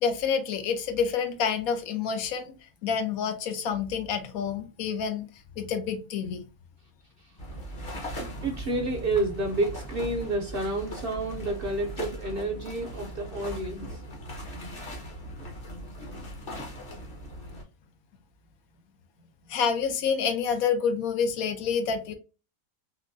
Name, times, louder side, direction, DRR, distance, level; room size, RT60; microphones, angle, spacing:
voice 1, 0.0-2.5 2.8-5.3 5.6-6.4 19.5-22.1, left 6 dB, 80° left, 1.1 m, -28 dB
sound 1, 7.4-17.6, equal, 45° left, 1.1 m, -39 dB
voice 2, 8.4-14.0, right 2 dB, 60° right, 0.6 m, -30 dB
3.7 x 2.8 x 2.5 m
omnidirectional pair, 1.5 m